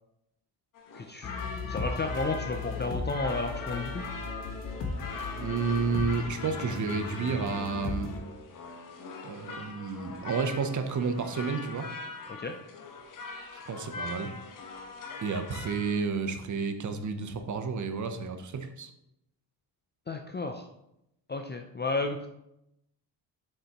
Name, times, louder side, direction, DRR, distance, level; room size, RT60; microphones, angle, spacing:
sound 1, 0.7-15.9, left 4 dB, 45° left, 0.9 m, -42 dB
voice 1, 0.9-1.3 1.7-4.0 12.4-12.5 20.1-20.7 21.3-22.3, left 3 dB, 25° left, 5 dB, 0.4 m, -32 dB
sound 2, 1.2-8.2, left 3 dB, 65° left, 1.4 m, -37 dB
voice 2, 5.3-8.1 9.2-11.9 13.5-14.3 15.2-18.9, right 5 dB, 40° right, 8 dB, 0.7 m, -31 dB
7.7 x 6.8 x 2.9 m, 0.82 s
cardioid pair, 165°, 45 cm